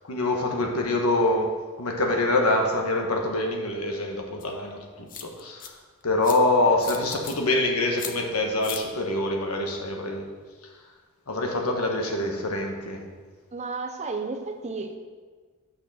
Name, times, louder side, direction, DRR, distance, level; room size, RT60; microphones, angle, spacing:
voice 1, 0.1-1.5 1.8-5.7 6.0-10.2 11.3-13.0, left 2 dB, 90° left, 2 dB, 1.3 m, -25 dB
sound 1, 4.4-4.5 5.1-5.7 6.2-6.4 6.8-7.4 8.0-8.1 8.6-8.8, left 8 dB, 40° left, 0.7 m, -37 dB
voice 2, 13.5-14.9, right 4 dB, 30° right, 4 dB, 0.7 m, -32 dB
6.5 x 6.0 x 6.3 m, 1.5 s
head